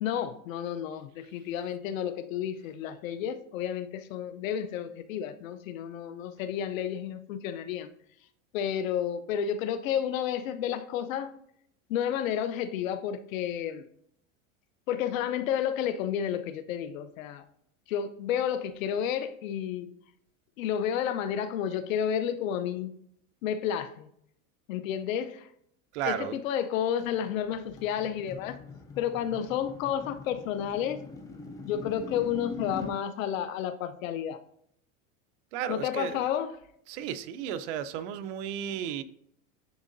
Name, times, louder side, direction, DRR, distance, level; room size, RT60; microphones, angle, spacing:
voice 1, 0.0-7.9 8.5-11.3 11.9-13.8 14.9-17.4 17.9-19.9 20.6-22.9 23.4-24.1 24.7-25.5 26.0-28.6 29.0-31.0 31.6-34.4 35.7-36.5, left 9 dB, 80° left, 0.7 m, -31 dB
voice 2, 25.9-26.4 35.5-36.2 36.9-39.0, right 9 dB, 60° right, 0.6 m, -34 dB
sound 1, 27.0-33.0, left 4 dB, 10° left, 0.4 m, -42 dB
10.0 x 3.7 x 2.6 m
supercardioid pair, 150°, 39 cm